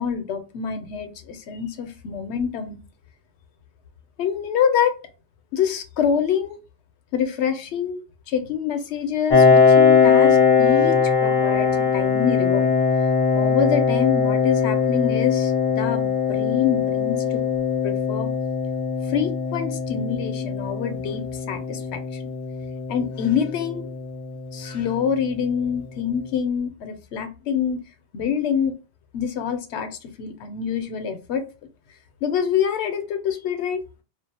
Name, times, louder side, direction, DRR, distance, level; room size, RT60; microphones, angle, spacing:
voice 1, 0.0-2.8 4.2-4.9 5.5-6.6 7.1-12.7 13.4-17.4 17.8-18.3 19.1-22.2 22.9-23.9 24.5-27.8 28.1-28.7 29.1-29.9 30.2-31.4 32.2-33.8, left 7 dB, 75° left, 7 dB, 0.8 m, -26 dB
Piano, 9.3-24.7, left 6 dB, 55° left, 0.4 m, -20 dB
2.5 x 2.0 x 2.7 m, 0.31 s
omnidirectional pair, 1.2 m